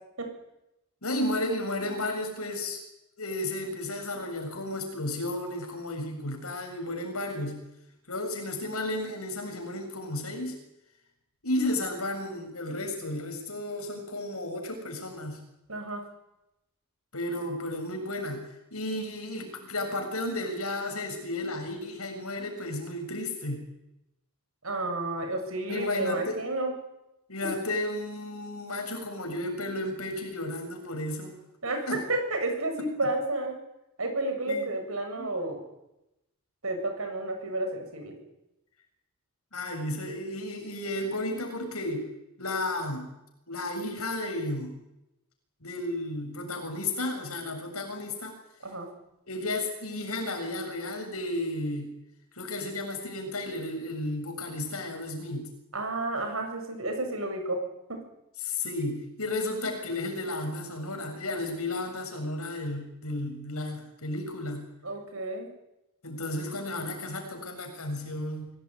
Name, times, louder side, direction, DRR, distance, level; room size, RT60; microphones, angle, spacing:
voice 1, 1.0-2.8 3.2-7.6 8.1-10.6 11.4-15.4 17.1-23.6 25.7-26.4 27.3-31.3 31.9-32.0 34.5-34.7 35.2-35.3 39.5-42.1 42.4-43.1 43.5-44.8 45.6-48.3 49.3-51.9 52.4-55.5 58.4-64.6 66.0-68.5, left 1 dB, 75° left, 4 dB, 7.4 m, -33 dB
voice 2, 15.7-16.0 24.6-26.7 27.4-27.5 31.6-33.6 34.0-35.6 36.6-38.1 48.6-48.9 55.7-57.6 57.9-58.0 64.8-65.5, right 2 dB, 70° right, 5 dB, 7.3 m, -31 dB
25.5 x 18.0 x 9.8 m, 0.89 s
head